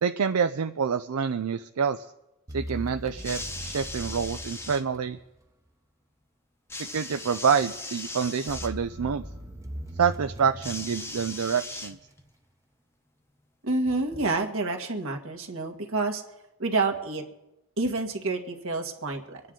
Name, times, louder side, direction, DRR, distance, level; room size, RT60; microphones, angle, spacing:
voice 1, 0.0-2.1 2.5-5.2 6.9-9.2 10.0-12.0, right 6 dB, 85° right, 9 dB, 0.5 m, -27 dB
sound 1, 2.5-5.5 8.5-11.9, right 1 dB, 15° right, 0.8 m, -39 dB
sound 2, 3.1-4.8 6.7-8.7 10.6-12.3 13.3-13.4, left 2 dB, 10° left, 0.9 m, -38 dB
voice 2, 13.6-16.2 16.6-17.2 17.8-19.4, right 3 dB, 65° right, 3 dB, 1.7 m, -28 dB
25.0 x 9.7 x 3.8 m, 0.96 s
head